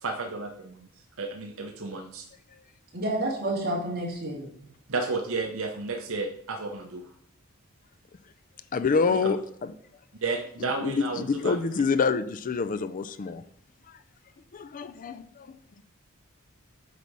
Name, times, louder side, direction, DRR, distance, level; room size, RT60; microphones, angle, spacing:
voice 1, 0.0-0.8 1.2-2.3 4.9-7.0 10.2-11.6, right 3 dB, 65° right, 3 dB, 0.8 m, -32 dB
voice 2, 2.9-4.5, right 1 dB, 45° right, -2 dB, 2.6 m, -29 dB
voice 3, 8.7-9.4 10.8-13.4 14.5-15.6, left 5 dB, 40° left, 13 dB, 0.4 m, -26 dB
8.2 x 4.8 x 5.4 m, 0.67 s
head